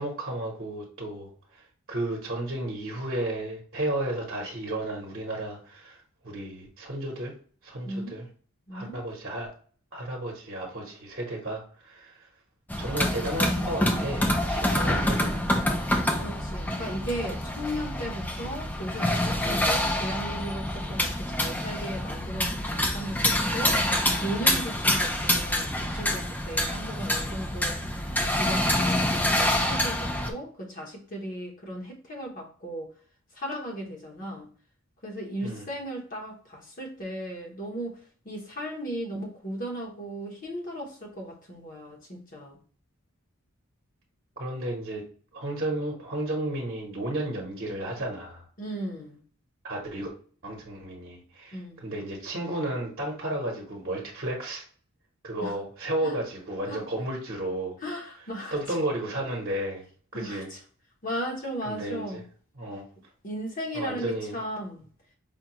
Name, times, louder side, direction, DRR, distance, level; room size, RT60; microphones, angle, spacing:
voice 1, 0.0-7.3 7.6-8.3 8.7-9.5 9.9-12.3 12.8-15.4 35.4-35.7 44.4-45.0 45.3-48.4 49.6-50.1 50.4-54.6 55.2-57.8 58.5-59.8 60.1-60.5 61.7-62.2 62.6-62.8 63.7-64.4, right 1 dB, 45° right, -2 dB, 0.9 m, -33 dB
voice 2, 7.8-8.2 8.7-9.0 16.1-23.8 24.2-32.9 33.3-34.5 35.0-42.6 48.6-49.2 51.5-51.9 55.4-55.6 56.0-56.2 56.7-56.8 57.8-58.6 60.1-60.6 61.0-62.2 63.2-64.8, equal, 40° left, 0 dB, 0.9 m, -36 dB
sound 1, 12.7-30.3, left 1 dB, 10° left, 0.4 m, -27 dB
5.1 x 2.3 x 2.9 m, 0.43 s
head